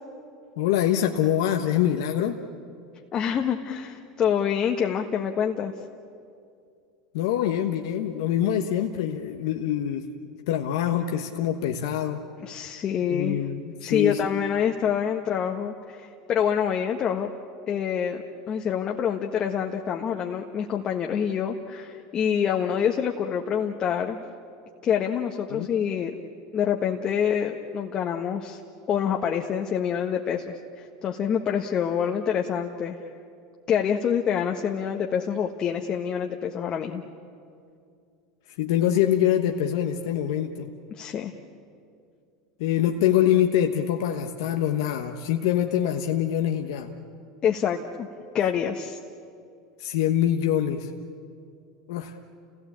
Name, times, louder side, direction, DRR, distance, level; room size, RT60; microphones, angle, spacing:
voice 1, 0.6-2.4 7.1-10.1 10.5-12.2 13.1-14.3 25.5-25.7 38.6-40.7 42.6-46.9 49.8-50.9 51.9-52.1, left 10 dB, 70° left, 3 dB, 1.2 m, -24 dB
voice 2, 3.1-5.7 12.4-13.4 13.8-17.3 17.7-24.2 24.8-26.2 26.5-28.6 28.9-33.0 33.7-37.0 40.9-41.3 47.4-48.1 48.3-49.0, left 8 dB, 40° left, 2 dB, 1.4 m, -26 dB
30.0 x 17.0 x 8.6 m, 2.4 s
hypercardioid pair, 95°, 2 cm